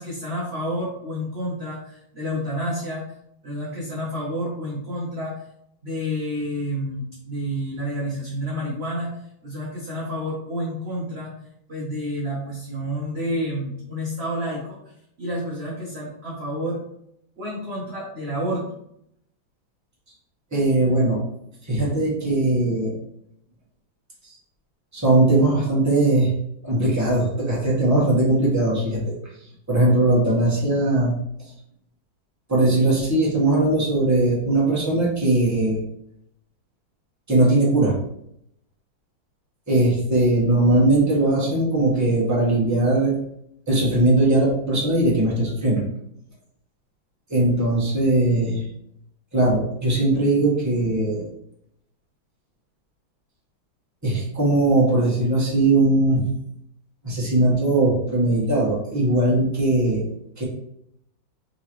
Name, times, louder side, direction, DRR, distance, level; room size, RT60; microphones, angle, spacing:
voice 1, 0.0-3.0 3.4-5.3 5.8-9.1 9.4-11.3 11.7-14.8 15.2-16.8 17.4-18.8, equal, 45° right, -5 dB, 0.8 m, -29 dB
voice 2, 20.5-21.2 21.7-22.9 24.9-26.3 26.6-29.1 29.7-31.1 32.5-35.8 37.3-37.9 39.7-43.1 43.7-45.8 47.3-48.7 49.3-51.2 54.0-56.2 57.0-60.0 60.4-60.5, right 2 dB, 10° right, -6 dB, 1.2 m, -20 dB
3.9 x 3.8 x 3.1 m, 0.75 s
omnidirectional pair, 2.1 m